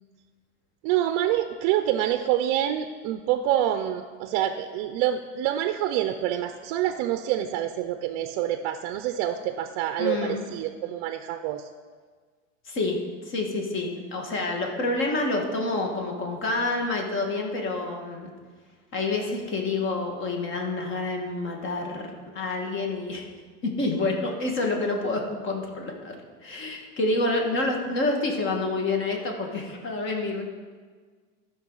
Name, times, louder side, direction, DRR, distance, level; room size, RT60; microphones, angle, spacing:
voice 1, 0.8-11.7, right 11 dB, 50° right, 8 dB, 0.6 m, -26 dB
voice 2, 10.0-10.4 12.6-13.0 13.3-18.3 18.9-23.2 23.6-26.2 26.4-30.4, left 2 dB, 30° left, 2 dB, 1.7 m, -28 dB
13.0 x 5.9 x 3.9 m, 1.5 s
supercardioid pair, 140°, 37 cm